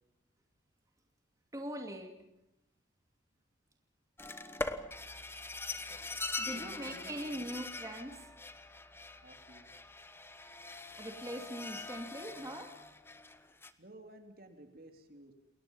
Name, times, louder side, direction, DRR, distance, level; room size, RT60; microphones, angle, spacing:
voice 1, 1.5-2.2 6.4-8.3 11.0-12.8, right 1 dB, 20° right, 3 dB, 2.6 m, -42 dB
sound 1, 4.2-13.7, left 3 dB, 15° left, 1.2 m, -43 dB
voice 2, 6.4-7.2 9.2-9.7 13.8-15.3, right 1 dB, 55° right, 6 dB, 3.3 m, -54 dB
29.0 x 21.5 x 5.6 m, 0.87 s
head